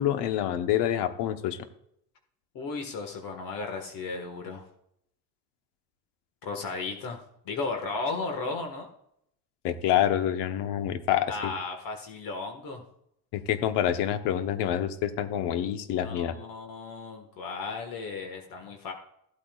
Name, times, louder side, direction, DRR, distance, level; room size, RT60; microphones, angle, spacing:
voice 1, 0.0-1.6 9.6-11.5 13.3-16.3, left 11 dB, 65° left, 9 dB, 1.2 m, -27 dB
voice 2, 2.6-4.6 6.4-7.2 7.5-8.9 11.3-12.8 16.0-18.9, left 3 dB, 50° left, 4 dB, 1.7 m, -35 dB
15.0 x 8.6 x 2.4 m, 0.73 s
cardioid pair, 130°, 44 cm